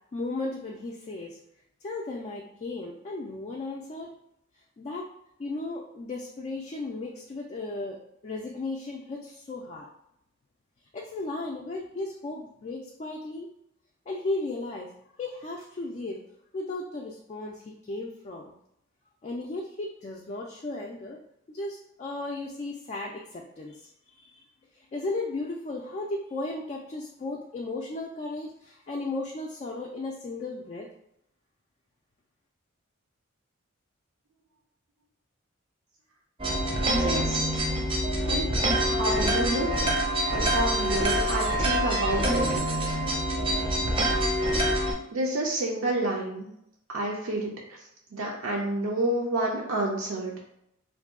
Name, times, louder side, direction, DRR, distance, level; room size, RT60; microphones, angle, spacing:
voice 1, 0.1-1.4 1.8-4.1 4.8-5.1 5.4-8.0 8.2-9.9 10.9-13.5 14.1-14.9 15.2-16.2 16.5-18.5 19.2-21.2 21.5-24.4 24.7-30.9, left 2 dB, 35° left, -1 dB, 0.3 m, -35 dB
sound 1, 36.4-44.9, right 1 dB, 25° right, 0.5 m, -26 dB
voice 2, 36.8-37.5 38.3-38.4 38.9-39.7 40.3-43.0 45.1-46.5 46.9-47.5 48.1-50.3, right 1 dB, 75° right, -2 dB, 0.5 m, -29 dB
2.6 x 2.2 x 3.6 m, 0.77 s
head